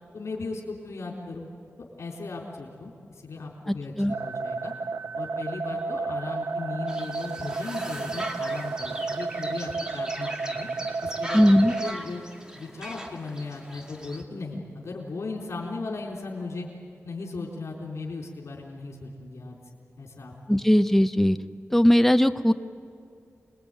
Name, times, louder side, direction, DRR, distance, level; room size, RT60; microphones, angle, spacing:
voice 1, 0.1-1.4 2.0-4.7 5.1-10.7 11.0-12.2 12.5-16.7 17.0-19.6 20.0-20.6, left 3 dB, 70° left, -1 dB, 3.8 m, -37 dB
voice 2, 3.7-4.1 11.3-11.7 20.5-21.4 21.7-22.5, equal, 5° left, 9 dB, 0.8 m, -19 dB
sound 1, 4.1-11.9, right 4 dB, 80° right, 0.6 m, -32 dB
sound 2, 6.9-14.2, equal, 15° right, 2.1 m, -40 dB
27.0 x 21.0 x 9.1 m, 2.3 s
wide cardioid pair, 125°, 5 cm